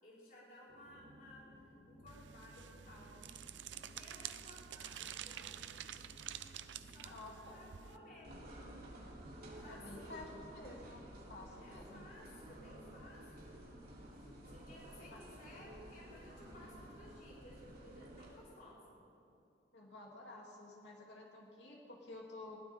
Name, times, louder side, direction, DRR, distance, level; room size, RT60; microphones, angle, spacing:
voice 1, 0.0-3.3 3.9-5.6 6.6-8.5 9.6-10.4 11.6-13.5 14.1-18.9, left 1 dB, 50° left, -6 dB, 5.0 m, -58 dB
sound 1, 0.7-19.3, left 1 dB, 10° left, 4.1 m, -61 dB
sound 2, 2.1-8.0, right 10 dB, 80° right, 0.6 m, -49 dB
voice 2, 7.1-7.5 9.6-11.0 11.3-12.1 15.1-15.2 19.7-22.6, left 2 dB, 75° left, -2 dB, 2.8 m, -52 dB
sound 3, 8.2-18.3, right 1 dB, 55° right, 3.4 m, -53 dB
21.0 x 16.0 x 3.7 m, 2.5 s
head